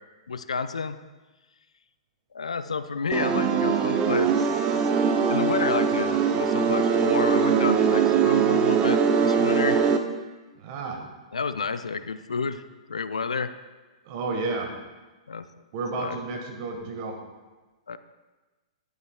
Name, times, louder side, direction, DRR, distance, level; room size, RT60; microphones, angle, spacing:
voice 1, 0.3-1.0 2.3-9.9 11.3-12.6 12.9-13.5 15.3-15.5 15.9-16.2 17.9-18.0, left 5 dB, 75° left, 12 dB, 0.4 m, -30 dB
sound 1, 3.1-10.0, right 6 dB, 25° right, 0.6 m, -22 dB
voice 2, 10.5-11.0 14.0-14.7 15.7-17.2, right 3 dB, 40° right, 2 dB, 1.5 m, -31 dB
10.5 x 9.1 x 2.3 m, 1.2 s
figure-of-eight pair, 110°, 3 cm